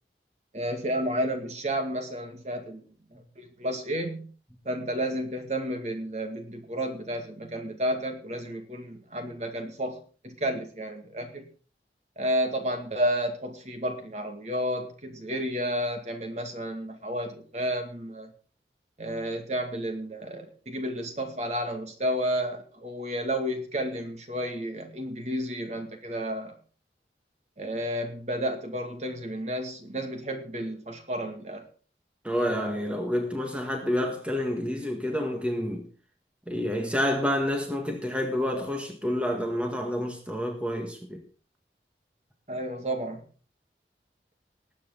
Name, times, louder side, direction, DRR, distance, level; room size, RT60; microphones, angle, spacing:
voice 1, 0.5-2.8 3.1-4.3 4.6-10.0 10.2-11.5 12.2-18.3 19.0-26.6 27.6-31.7 42.5-43.2, equal, 40° right, 2.3 m, -31 dB
voice 2, 32.2-35.9 36.5-41.2, left 1 dB, 5° right, 1.7 m, -29 dB
20.0 x 8.3 x 4.0 m
head